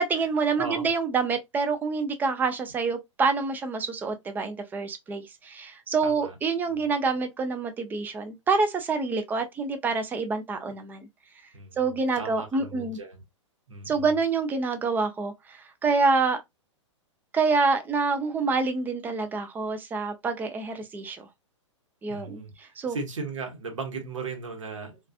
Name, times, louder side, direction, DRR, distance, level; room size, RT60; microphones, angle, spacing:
voice 1, 0.0-11.1 11.8-13.0 13.9-16.4 17.3-21.3 22.0-23.0, right 4 dB, 10° right, 0.4 m, -27 dB
voice 2, 0.6-0.9 6.0-6.3 6.7-6.8 11.5-11.9 12.2-13.2 13.7-14.1 22.1-22.5 22.9-25.0, right 4 dB, 75° right, 1.0 m, -36 dB
2.4 x 2.4 x 2.3 m
hypercardioid pair, 115°, 16 cm